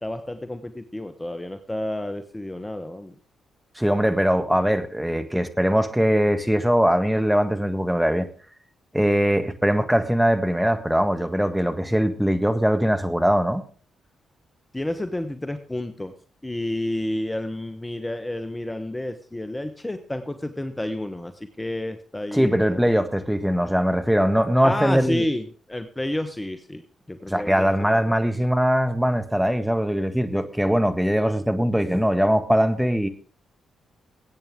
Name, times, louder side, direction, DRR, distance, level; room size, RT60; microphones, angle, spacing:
voice 1, 0.0-3.1 14.7-16.1 16.4-22.9 24.6-28.1, left 1 dB, 15° left, 1.2 m, -30 dB
voice 2, 3.8-8.3 8.9-13.6 22.3-25.2 27.3-33.1, equal, 5° right, 1.6 m, -21 dB
20.0 x 8.9 x 3.7 m
hypercardioid pair, 40°, 0 cm